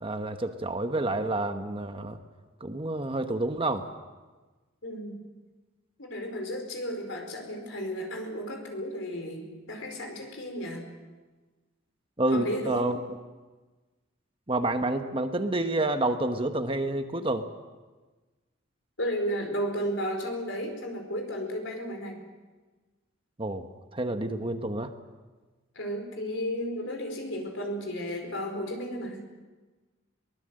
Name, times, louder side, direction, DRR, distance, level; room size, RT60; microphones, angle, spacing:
voice 1, 0.0-2.2 2.6-3.9 12.2-13.0 14.5-17.5 23.4-23.6 23.9-24.9, right 2 dB, 25° right, 7 dB, 1.1 m, -28 dB
voice 2, 4.8-5.2 6.0-10.9 12.3-13.0 19.0-22.2 25.7-29.2, equal, 65° left, 3 dB, 4.8 m, -33 dB
23.0 x 20.0 x 7.8 m, 1.3 s
head